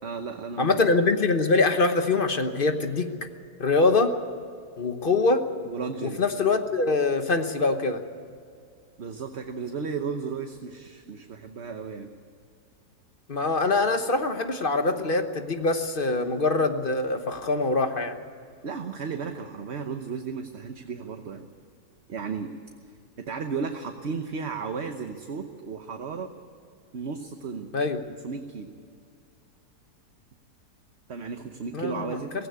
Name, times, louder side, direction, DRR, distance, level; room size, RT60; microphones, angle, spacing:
voice 1, 0.0-0.8 5.7-6.2 9.0-12.1 18.6-21.5 22.1-22.5 23.2-26.3 26.9-27.7 28.2-28.7 31.1-32.3, right 5 dB, 45° right, 6 dB, 1.1 m, -34 dB
voice 2, 0.6-3.1 3.6-4.1 4.8-5.4 6.0-8.0 13.3-18.2 27.7-28.0 31.7-32.2, left 3 dB, 35° left, 7 dB, 1.1 m, -24 dB
18.0 x 16.0 x 9.6 m, 2.3 s
omnidirectional pair, 1.7 m